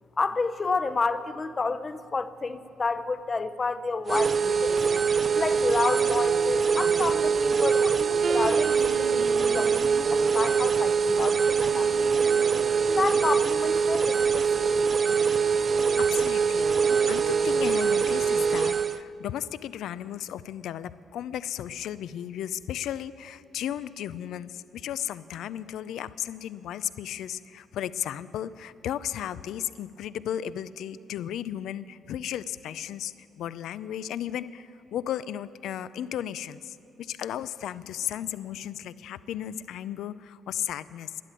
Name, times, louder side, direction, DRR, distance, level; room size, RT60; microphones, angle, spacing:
voice 1, 0.2-4.8 5.3-12.4 13.0-15.0, left 4 dB, 30° left, 12 dB, 0.7 m, -30 dB
sound 1, 4.1-19.0, right 6 dB, 40° right, 0.4 m, -23 dB
sound 2, 8.2-10.1 11.5-13.3, right 6 dB, 60° right, 0.9 m, -37 dB
voice 2, 16.0-41.2, left 10 dB, 80° left, 16 dB, 0.4 m, -35 dB
12.5 x 11.0 x 9.0 m, 2.6 s
cardioid pair, 90°, 0 cm